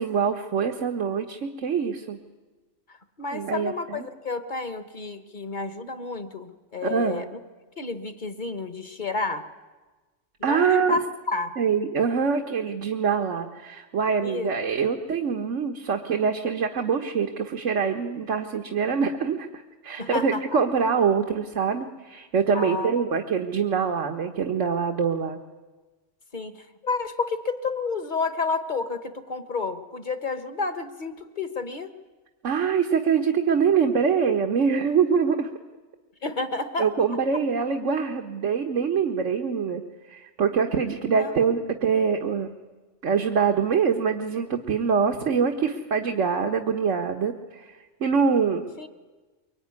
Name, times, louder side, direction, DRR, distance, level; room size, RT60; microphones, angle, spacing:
voice 1, 0.0-2.2 3.3-4.1 6.8-7.3 10.4-11.0 11.6-25.4 32.4-35.5 36.8-39.8 40.1-42.5 43.0-48.7, right 6 dB, 80° right, 4 dB, 1.6 m, -24 dB
voice 2, 2.9-7.2 7.8-9.4 10.4-11.5 14.2-14.5 20.0-20.6 22.5-22.9 26.3-31.9 36.2-36.9 41.0-41.3 48.8-48.9, left 3 dB, 40° left, 10 dB, 1.5 m, -30 dB
23.5 x 23.5 x 9.6 m, 1.3 s
omnidirectional pair, 1.2 m